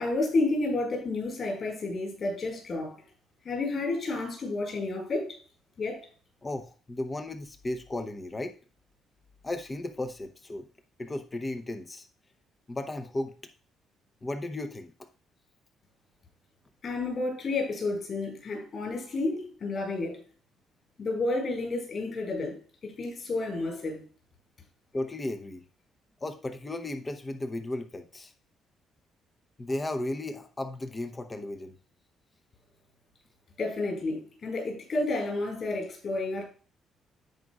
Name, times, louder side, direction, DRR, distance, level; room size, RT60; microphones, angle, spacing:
voice 1, 0.0-3.0 3.4-5.4 5.8-6.1 16.8-20.2 21.0-22.6 22.8-24.0 33.6-36.4, left 2 dB, 35° left, 4.9 m, -31 dB
voice 2, 6.4-8.5 9.4-10.7 11.0-12.0 12.7-13.3 14.2-14.9 24.9-25.6 26.2-28.3 29.6-31.7, left 1 dB, 15° left, 0.7 m, -35 dB
15.5 x 5.2 x 2.4 m
cardioid pair, 175°, 0 cm